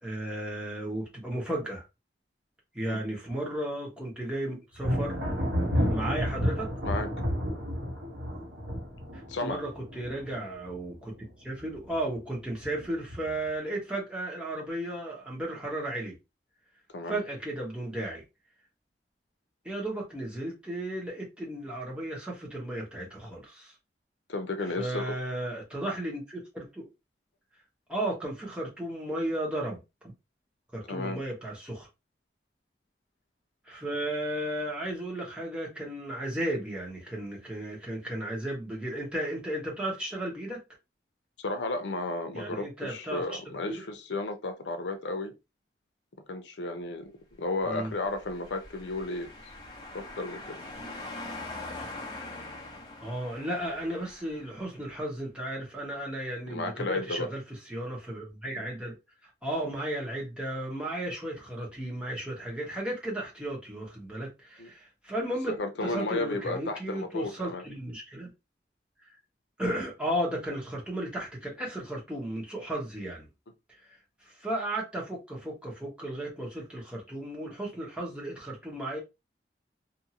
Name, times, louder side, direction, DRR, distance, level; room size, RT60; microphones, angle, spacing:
voice 1, 0.0-1.9 2.7-5.2 5.9-6.7 9.1-11.1 11.4-16.2 17.1-18.2 19.6-23.7 24.6-26.9 27.9-30.1 30.7-31.9 33.6-40.6 42.3-43.4 43.7-43.8 47.6-47.9 51.8-51.9 53.0-57.4 57.7-59.0 59.2-65.6 65.8-68.3 69.6-73.3 73.9-74.0 74.2-79.0, right 1 dB, 5° right, 1.0 m, -34 dB
Thunder, 4.8-11.3 11.6-12.2 12.6-13.5, equal, 80° right, 1.2 m, -31 dB
voice 2, 9.3-9.6 16.9-17.2 24.3-25.1 30.9-31.2 41.4-45.3 46.3-47.1 47.4-49.3 49.9-50.6 56.5-57.3 64.6-64.7 65.5-67.6, left 2 dB, 85° left, 0.6 m, -33 dB
sound 1, 47.9-54.7, left 2 dB, 25° left, 0.7 m, -43 dB
2.6 x 2.6 x 2.8 m
head